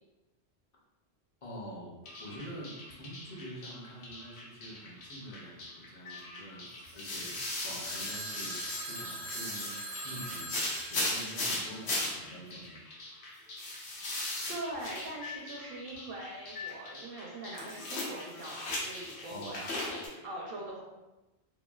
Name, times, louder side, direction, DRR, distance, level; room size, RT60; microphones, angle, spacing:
voice 1, 1.4-12.8 19.3-19.6, equal, 40° left, -4 dB, 0.6 m, -46 dB
sound 1, 2.1-20.1, left 2 dB, 75° left, 0.9 m, -39 dB
Telephone, 7.8-12.1, right 1 dB, 45° right, 0.4 m, -42 dB
voice 2, 14.5-20.8, right 1 dB, 65° right, -2 dB, 0.7 m, -42 dB
3.0 x 2.2 x 2.3 m, 1.0 s
omnidirectional pair, 1.1 m